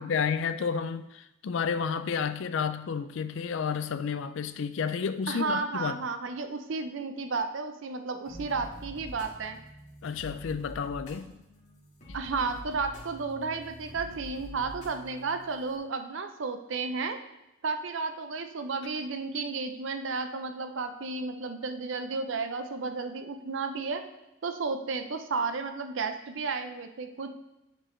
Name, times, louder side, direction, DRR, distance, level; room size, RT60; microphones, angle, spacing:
voice 1, 0.0-6.0 10.0-11.4, left 6 dB, 65° left, 0.4 m, -31 dB
voice 2, 5.3-9.6 12.1-17.2 17.6-24.0 24.4-27.3, right 4 dB, 65° right, 0.6 m, -33 dB
sound 1, 8.2-15.8, equal, 35° left, 1.8 m, -46 dB
8.9 x 4.4 x 3.2 m
head